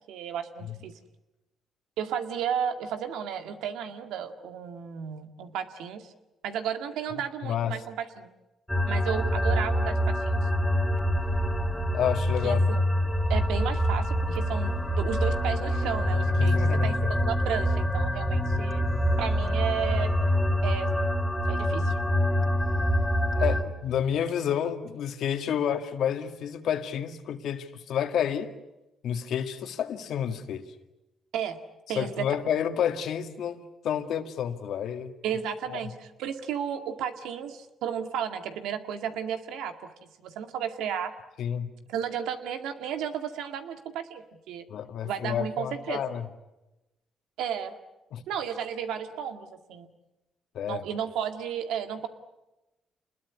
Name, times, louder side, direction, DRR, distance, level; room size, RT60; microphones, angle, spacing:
voice 1, 0.1-0.9 2.0-6.1 6.4-8.3 8.9-10.5 12.4-12.8 13.3-16.6 16.8-18.8 19.2-20.1 20.6-20.9 21.5-21.9 31.3-31.6 31.9-32.3 35.2-39.9 40.2-41.1 41.9-44.7 45.0-46.0 47.4-47.7 48.3-49.9 50.7-52.1, right 8 dB, 90° right, 8 dB, 2.0 m, -33 dB
voice 2, 7.4-7.8 11.9-12.6 16.4-17.1 23.4-28.5 29.0-30.7 31.9-35.2 35.7-35.8 41.4-41.7 44.7-46.3 48.1-48.2 50.5-50.8, left 9 dB, 75° left, 7 dB, 2.1 m, -30 dB
sound 1, 8.7-23.6, equal, 5° left, 2.5 m, -25 dB
28.0 x 21.0 x 9.7 m, 0.99 s
cardioid pair, 90°, 0 cm